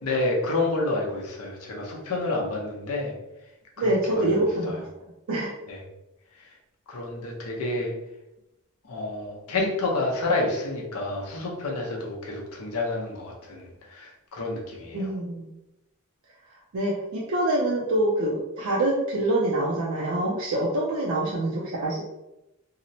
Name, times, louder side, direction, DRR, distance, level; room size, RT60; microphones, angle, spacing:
voice 1, 0.0-3.1 3.8-4.3 4.7-4.8 5.7-5.8 6.9-7.9 8.8-15.1, left 2 dB, 80° left, -1 dB, 0.7 m, -29 dB
voice 2, 3.8-4.9 5.3-5.5 14.9-15.5 16.7-22.0, right 1 dB, 65° right, -4 dB, 0.4 m, -25 dB
2.8 x 2.0 x 2.7 m, 0.91 s
head